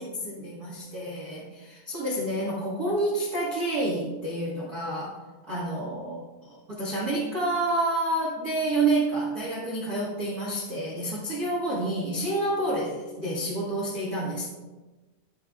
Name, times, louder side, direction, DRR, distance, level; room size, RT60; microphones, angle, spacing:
voice 1, 0.0-5.2 5.5-14.5, right 2 dB, 75° right, -6 dB, 0.8 m, -29 dB
15.0 x 6.5 x 2.5 m, 1.2 s
omnidirectional pair, 5.0 m